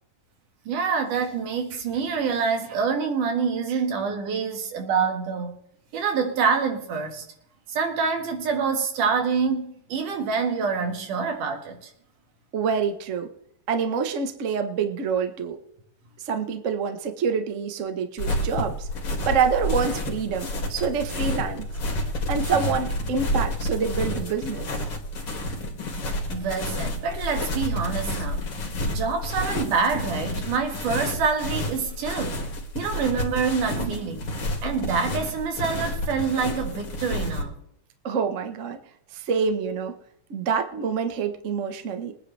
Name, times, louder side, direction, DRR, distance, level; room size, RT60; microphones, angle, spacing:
voice 1, 0.7-5.6 5.9-7.2 7.7-11.9 25.2-25.4 26.3-28.5 28.9-32.4 32.7-37.6, right 5 dB, 90° right, 3.4 m, -26 dB
voice 2, 12.5-13.3 13.7-15.6 16.2-18.9 19.2-21.7 22.3-24.7 38.0-38.8 39.1-39.9 40.3-42.2, right 6 dB, 65° right, 0.7 m, -26 dB
sound 1, 18.2-37.4, left 1 dB, 50° left, 3.2 m, -30 dB
23.0 x 9.9 x 3.4 m
omnidirectional pair, 3.5 m